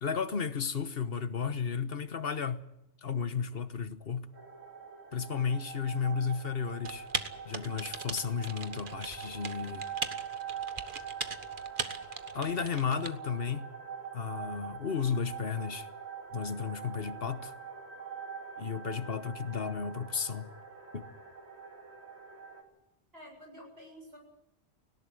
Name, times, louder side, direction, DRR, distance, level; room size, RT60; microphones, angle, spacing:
voice 1, 0.0-2.7 3.0-4.3 5.1-7.1 7.4-9.8 12.3-13.7 14.1-15.9 16.3-17.5 18.6-20.5 20.9-21.1, left 6 dB, 65° left, 1.4 m, -33 dB
sound 1, 4.3-22.6, right 7 dB, 90° right, 3.0 m, -44 dB
Typing, 6.8-13.1, right 5 dB, 50° right, 1.4 m, -39 dB
voice 2, 23.1-24.2, equal, 70° right, 7.5 m, -50 dB
18.5 x 17.5 x 9.3 m
omnidirectional pair, 1.1 m